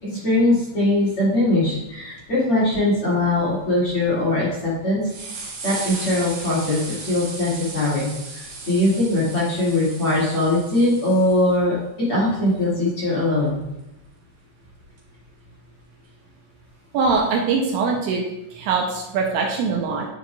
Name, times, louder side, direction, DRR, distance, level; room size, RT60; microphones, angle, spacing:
voice 1, 0.0-5.0 5.6-8.1 8.7-11.8 12.1-13.6, left 1 dB, 35° left, -9 dB, 2.6 m, -21 dB
sound 1, 1.9-2.0 2.2-2.3 2.6-2.8 3.4-4.1 4.7-4.8 5.1-11.5 13.6-13.7 15.0-15.1, right 3 dB, 65° right, 5.1 m, -36 dB
voice 2, 16.9-20.1, right 4 dB, 80° right, 0 dB, 2.8 m, -22 dB
11.5 x 5.2 x 2.4 m, 0.88 s
omnidirectional pair, 5.6 m